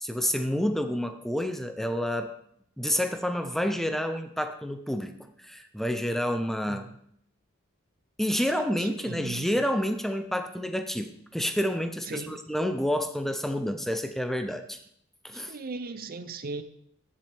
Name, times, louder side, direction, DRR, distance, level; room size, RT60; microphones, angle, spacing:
voice 1, 0.0-2.3 2.8-5.1 5.4-6.9 8.2-14.8 15.2-15.6, equal, ahead, 8 dB, 0.6 m, -29 dB
voice 2, 8.8-9.5 12.1-12.4 15.3-16.6, right 3 dB, 45° right, 11 dB, 0.6 m, -38 dB
15.0 x 7.5 x 3.5 m, 0.67 s
head